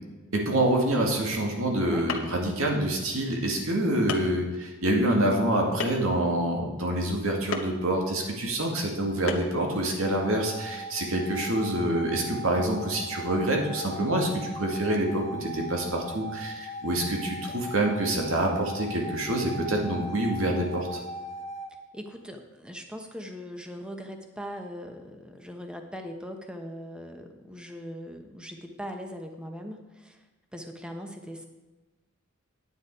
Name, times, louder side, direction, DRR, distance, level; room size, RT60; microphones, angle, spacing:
voice 1, 0.3-21.0, right 1 dB, 85° right, 0 dB, 2.1 m, -26 dB
sound 1, 1.7-1.8 2.1-2.5 3.3-3.4 4.1-4.4 5.8-6.2 7.5-7.8 9.3-9.6, left 4 dB, 90° left, 1.1 m, -32 dB
sound 2, 10.0-21.7, equal, 35° left, 0.8 m, -39 dB
voice 2, 21.9-30.2 30.5-31.4, equal, 5° right, 4 dB, 1.0 m, -40 dB
9.4 x 9.4 x 4.8 m, 1.2 s
head